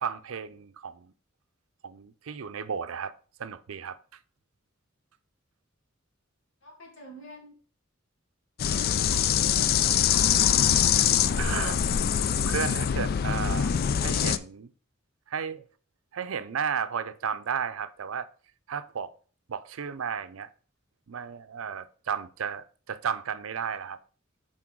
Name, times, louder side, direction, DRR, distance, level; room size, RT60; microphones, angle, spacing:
voice 1, 0.0-1.1 1.8-3.1 3.4-4.0 11.0-11.1 11.4-12.0 12.4-13.7 14.0-14.7 15.3-15.6 16.1-18.3 18.7-19.1 19.5-20.5 21.1-24.0, right 7 dB, 85° right, 0.5 m, -33 dB
voice 2, 6.6-7.5 8.6-12.1, equal, 70° left, 2.3 m, -46 dB
sound 1, 8.6-14.4, left 9 dB, 50° left, 0.3 m, -24 dB
6.0 x 4.4 x 4.6 m
head